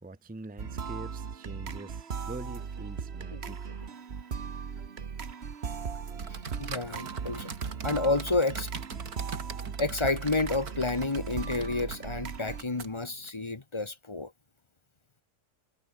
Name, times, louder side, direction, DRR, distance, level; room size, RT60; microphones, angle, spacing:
voice 1, 0.0-3.8, right 2 dB, 10° right, 0.7 m, -44 dB
sound 1, 0.6-12.6, right 6 dB, 45° right, 1.4 m, -38 dB
sound 2, 6.2-13.3, right 6 dB, 85° right, 2.4 m, -42 dB
voice 2, 6.6-7.5 7.8-8.7 9.8-14.3, left 3 dB, 20° left, 1.1 m, -30 dB
omnidirectional pair, 1.6 m